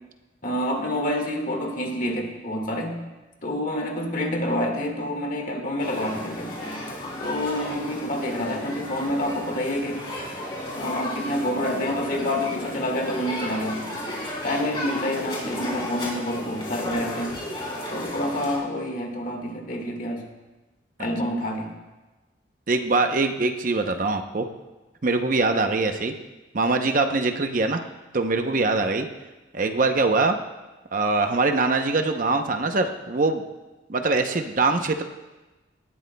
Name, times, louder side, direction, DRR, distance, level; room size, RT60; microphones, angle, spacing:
voice 1, 0.4-3.0 3.4-6.5 7.2-10.0 10.7-13.8 14.4-17.3 17.9-20.2 21.0-21.7, left 1 dB, 45° left, 2 dB, 1.7 m, -28 dB
sound 1, 5.8-18.6, left 1 dB, 25° left, 3.2 m, -33 dB
voice 2, 22.7-24.5 25.0-26.1 26.5-27.8 28.1-29.1 29.5-30.4 30.9-33.4 33.9-35.0, right 3 dB, 45° right, 6 dB, 0.7 m, -23 dB
18.5 x 13.0 x 2.2 m, 1.1 s
head